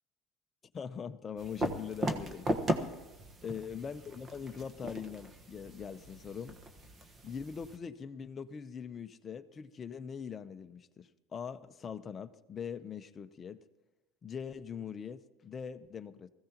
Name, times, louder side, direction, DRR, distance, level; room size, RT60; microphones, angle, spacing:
voice 1, 0.7-2.5 3.4-6.6 7.2-13.6 14.2-16.3, left 7 dB, 25° left, 0.7 m, -42 dB
sound 1, 1.4-7.8, right 1 dB, 25° right, 1.3 m, -38 dB
20.5 x 15.5 x 3.0 m
supercardioid pair, 140°, 0 cm